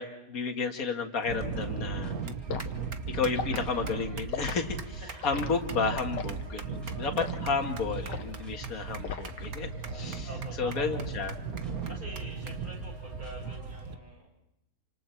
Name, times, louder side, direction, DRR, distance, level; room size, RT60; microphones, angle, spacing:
voice 1, 0.0-2.1 3.1-10.3 10.6-11.4, left 5 dB, 55° left, 4 dB, 2.2 m, -32 dB
sound 1, 1.2-14.0, right 1 dB, ahead, 6.2 m, -50 dB
sound 2, 1.3-13.9, right 5 dB, 60° right, 1.6 m, -37 dB
Liquid, 2.5-2.7 3.3-3.7 4.3-4.6 5.2-5.5 6.1-6.4 7.2-7.4 8.1-8.4 9.0-9.5 9.8-10.1, left 7 dB, 80° left, 1.9 m, -37 dB
voice 2, 10.2-11.0 11.9-14.3, right 1 dB, 30° right, -2 dB, 7.8 m, -45 dB
29.0 x 26.5 x 4.6 m, 0.86 s
omnidirectional pair, 1.8 m